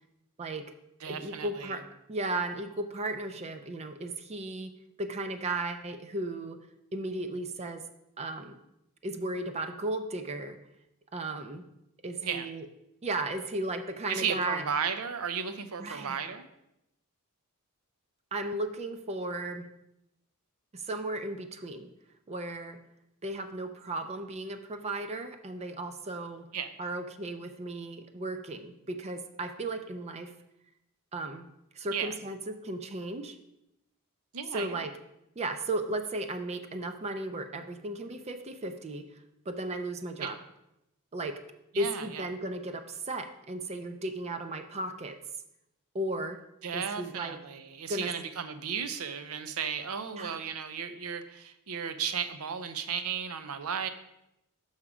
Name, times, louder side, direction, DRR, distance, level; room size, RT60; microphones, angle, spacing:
voice 1, 0.4-0.7 1.1-1.8 2.1-4.7 5.0-6.6 6.9-7.9 8.2-8.6 9.0-10.6 11.1-11.6 12.0-12.7 13.0-14.6 15.8-16.2 18.3-19.7 20.7-21.9 22.3-22.8 23.2-26.5 26.8-30.3 31.1-31.5 31.7-33.4 34.5-34.9 35.4-39.1 39.5-40.4 41.1-41.4 41.8-45.2 45.9-46.4 46.7-47.4 47.9-48.1 50.1-50.4, right 2 dB, 30° right, 8 dB, 0.4 m, -35 dB
voice 2, 1.0-1.7 12.2-12.5 14.1-16.5 26.5-26.7 31.9-32.1 34.3-34.9 40.2-40.3 41.7-42.2 46.6-53.9, right 7 dB, 70° right, 10 dB, 0.6 m, -34 dB
6.0 x 5.6 x 4.9 m, 0.85 s
head